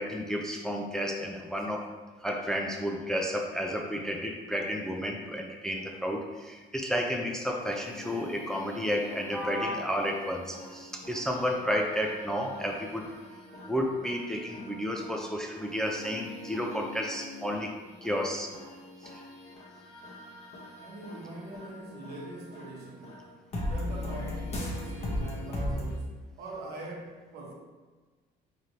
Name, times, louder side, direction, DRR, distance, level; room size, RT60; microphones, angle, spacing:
voice 1, 0.0-1.9 2.2-13.1 13.7-17.7 18.0-18.5 19.0-19.2, equal, 5° left, 1 dB, 0.3 m, -32 dB
sound 1, 7.6-26.0, left 1 dB, 40° left, 0.9 m, -40 dB
voice 2, 20.8-23.2 23.6-27.5, right 2 dB, 75° right, -1 dB, 0.9 m, -43 dB
3.8 x 3.2 x 2.7 m, 1.3 s
cardioid pair, 110°, 17 cm